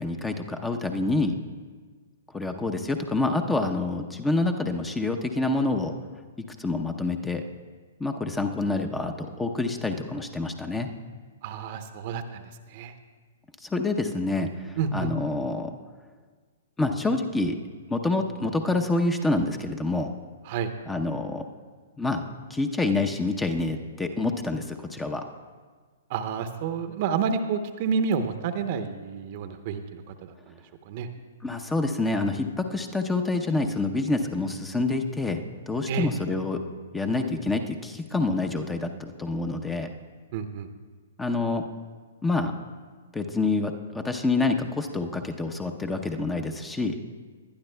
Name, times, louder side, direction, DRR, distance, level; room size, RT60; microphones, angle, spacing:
voice 1, 0.0-1.4 2.3-5.9 6.6-7.4 8.0-10.9 13.6-15.7 16.8-17.6 17.9-20.1 20.9-21.4 22.0-22.2 22.5-25.2 31.4-35.4 35.7-36.6 36.9-39.9 41.2-41.6 42.2-42.5 43.1-47.0, left 2 dB, 10° left, 5 dB, 0.7 m, -27 dB
voice 2, 11.4-12.4 12.7-12.9 14.8-15.1 20.4-20.7 26.1-30.6 30.9-31.1 35.9-36.1 40.3-40.7, right 6 dB, 45° right, 8 dB, 0.8 m, -29 dB
20.0 x 11.5 x 2.2 m, 1.5 s
figure-of-eight pair, 115°, 0 cm